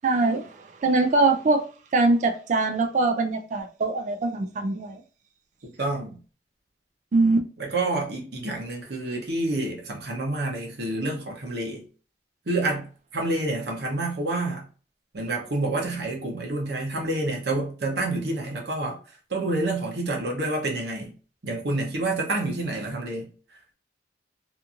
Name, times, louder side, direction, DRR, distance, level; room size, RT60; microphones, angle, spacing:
voice 1, 0.0-0.5 0.8-1.6 1.9-5.0 7.1-7.5, right 3 dB, 40° right, 0.3 m, -22 dB
voice 2, 5.6-6.2 7.6-11.8 12.5-12.9 13.1-14.6 15.1-19.0 19.3-21.1 21.4-23.3, right 2 dB, 60° right, 0.7 m, -28 dB
2.8 x 2.5 x 2.4 m
head